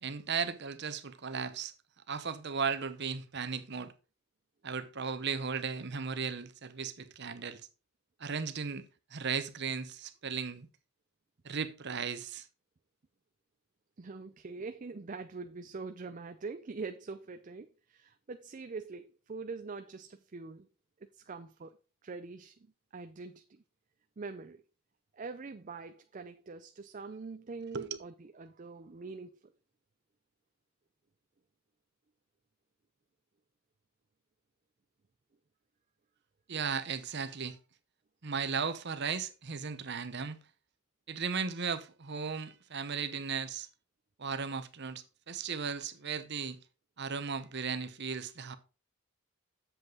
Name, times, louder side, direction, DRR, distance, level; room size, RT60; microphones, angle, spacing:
voice 1, 0.0-1.7 2.1-3.9 4.6-7.6 8.2-10.7 11.4-12.5 27.7-27.9 36.5-37.6 38.2-40.4 41.1-43.7 44.2-46.6 47.0-48.6, right 5 dB, 55° right, 0.9 m, -36 dB
voice 2, 14.0-20.7 21.2-21.8 22.0-22.6 22.9-23.6 24.2-24.6 25.1-29.4, right 4 dB, 40° right, 0.5 m, -44 dB
8.0 x 7.5 x 3.8 m
head